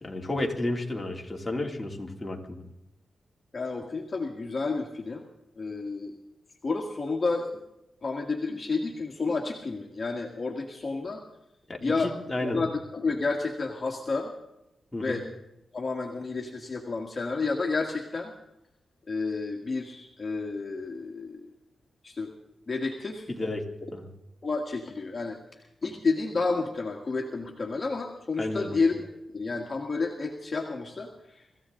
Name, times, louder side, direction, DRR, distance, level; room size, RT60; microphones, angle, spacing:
voice 1, 0.0-2.6 11.7-12.6 14.9-15.2 23.3-24.0 28.4-28.8, left 2 dB, 15° left, 0 dB, 2.8 m, -32 dB
voice 2, 3.5-5.2 5.6-6.1 6.6-7.5 8.0-11.2 11.8-12.1 12.4-14.3 15.0-15.3 15.7-18.3 19.1-21.5 22.0-22.3 22.7-23.3 24.4-25.4 25.8-29.1 29.3-31.4, left 3 dB, 35° left, 1 dB, 1.8 m, -30 dB
25.0 x 15.0 x 3.8 m, 0.88 s
cardioid pair, 90°, 0 cm